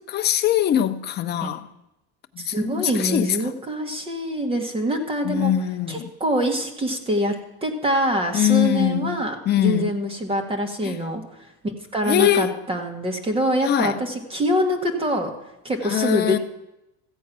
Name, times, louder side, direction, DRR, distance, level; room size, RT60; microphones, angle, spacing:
voice 1, 0.0-1.7 2.3-3.4 5.2-6.1 8.3-9.9 10.8-11.0 12.1-12.6 13.6-14.0 15.8-16.4, left 11 dB, 30° left, 0.7 m, -22 dB
voice 2, 2.4-5.5 5.9-7.3 7.6-15.3 15.6-16.4, equal, 15° right, 1.4 m, -25 dB
14.5 x 8.4 x 6.0 m
cardioid pair, 160°, 35 cm